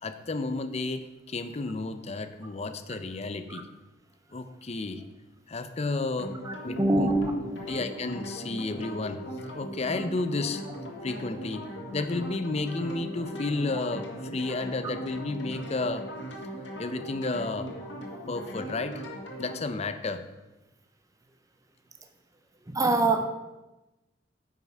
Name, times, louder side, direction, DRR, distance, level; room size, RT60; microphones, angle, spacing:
voice 1, 0.0-3.7 4.3-5.0 5.5-6.3 6.6-7.1 7.6-9.2 9.5-10.6 11.0-11.7 11.9-16.1 16.8-17.7 18.3-19.0 19.4-20.2, left 3 dB, 35° left, 10 dB, 0.6 m, -32 dB
sound 1, 6.1-19.6, equal, 80° left, 1.6 m, -39 dB
voice 2, 6.5-7.7 22.7-23.3, right 2 dB, 20° right, 6 dB, 0.6 m, -25 dB
9.3 x 5.6 x 4.7 m, 1.0 s
head